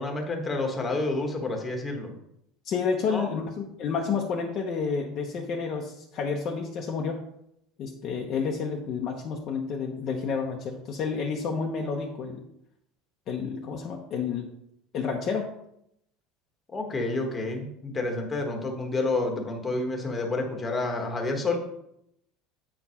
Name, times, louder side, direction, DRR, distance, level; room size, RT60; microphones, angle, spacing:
voice 1, 0.0-2.1 3.1-3.3 16.7-21.6, left 2 dB, 15° left, 2 dB, 1.3 m, -29 dB
voice 2, 2.6-7.2 7.8-12.4 13.3-14.5 14.9-15.5, left 5 dB, 35° left, 1 dB, 0.8 m, -30 dB
8.4 x 4.7 x 5.6 m, 0.77 s
cardioid pair, 170°, 0 cm